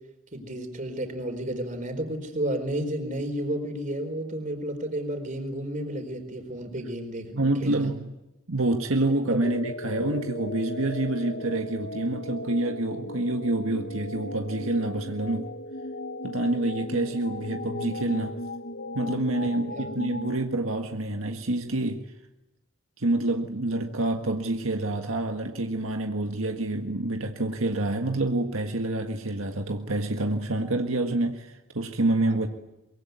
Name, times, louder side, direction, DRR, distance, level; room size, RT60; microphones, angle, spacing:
voice 1, 0.3-7.9 9.3-9.4 19.4-19.9 32.2-32.4, right 1 dB, 35° right, 6 dB, 4.4 m, -32 dB
voice 2, 7.3-8.1 8.5-15.5 16.2-18.4 18.9-22.1 23.0-32.5, right 2 dB, 80° right, 4 dB, 1.7 m, -27 dB
sound 1, 9.4-20.4, left 1 dB, 50° left, 1.0 m, -36 dB
24.0 x 23.5 x 9.5 m, 0.96 s
head